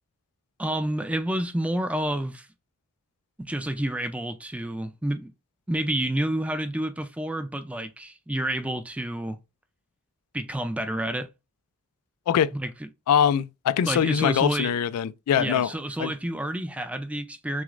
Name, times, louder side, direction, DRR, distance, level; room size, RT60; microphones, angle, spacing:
voice 1, 0.6-2.5 3.4-5.3 5.7-9.4 10.3-11.3 12.5-12.9 13.9-14.7 15.4-17.6, right 1 dB, 5° right, 0.3 m, -29 dB
voice 2, 13.1-15.7 16.0-16.1, left 8 dB, 90° left, 0.3 m, -23 dB
6.0 x 2.0 x 2.4 m
head